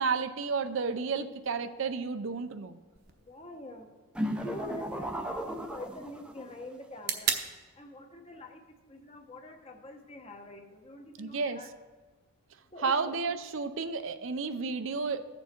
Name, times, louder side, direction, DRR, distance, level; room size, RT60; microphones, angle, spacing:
voice 1, 0.0-2.8 11.2-11.6 12.8-15.3, right 4 dB, 70° right, 10 dB, 0.5 m, -31 dB
sound 1, 3.0-10.9, right 7 dB, 50° right, 0.9 m, -41 dB
voice 2, 3.2-3.9 4.4-7.4 7.7-11.7 12.7-12.9, left 1 dB, 30° left, 4 dB, 1.0 m, -45 dB
sound 2, 4.1-6.5, equal, 5° right, 0.5 m, -35 dB
14.5 x 7.0 x 4.4 m, 1.4 s
head